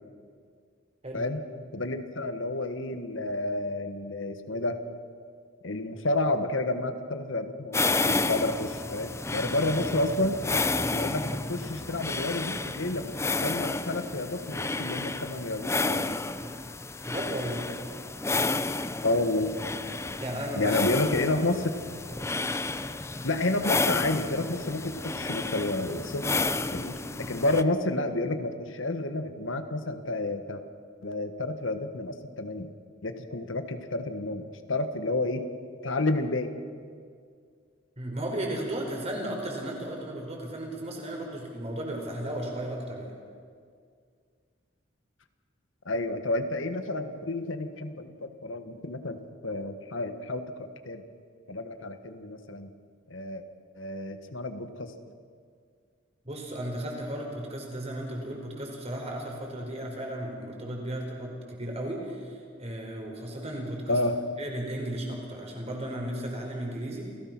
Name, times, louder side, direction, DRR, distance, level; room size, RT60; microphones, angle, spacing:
voice 1, 1.1-1.4 1.7-4.8 5.6-10.4 10.9-13.1 13.4-16.2 19.0-19.5 20.5-21.7 23.2-26.3 26.7-30.6 31.0-32.7 33.0-35.4 35.8-36.5 45.8-51.0 51.5-52.7 53.1-53.4 53.8-54.9 63.9-64.2, left 2 dB, 80° left, 8 dB, 1.5 m, -30 dB
sound 1, 7.7-27.6, left 3 dB, 15° left, 0.6 m, -31 dB
voice 2, 17.0-17.7 20.2-20.8 21.3-21.4 38.0-43.1 56.2-64.0 64.4-67.1, right 1 dB, 35° right, 0 dB, 4.8 m, -35 dB
28.0 x 17.0 x 6.1 m, 2.1 s
head